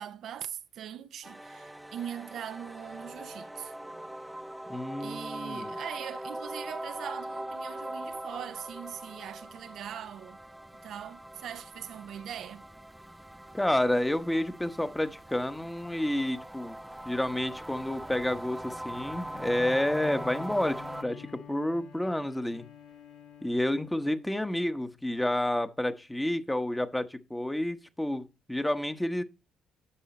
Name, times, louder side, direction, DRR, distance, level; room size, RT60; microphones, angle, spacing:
voice 1, 0.0-3.8 5.0-10.4 10.8-12.7, right 9 dB, 65° right, 0.6 m, -41 dB
sound 1, 1.2-21.0, right 1 dB, 5° right, 0.4 m, -42 dB
voice 2, 4.7-5.7 13.5-16.8 17.0-22.7 23.4-29.2, left 1 dB, 10° left, 1.0 m, -30 dB
Bowed string instrument, 19.1-24.6, left 5 dB, 75° left, 2.4 m, -48 dB
9.8 x 6.6 x 4.2 m
supercardioid pair, 70°, 0 cm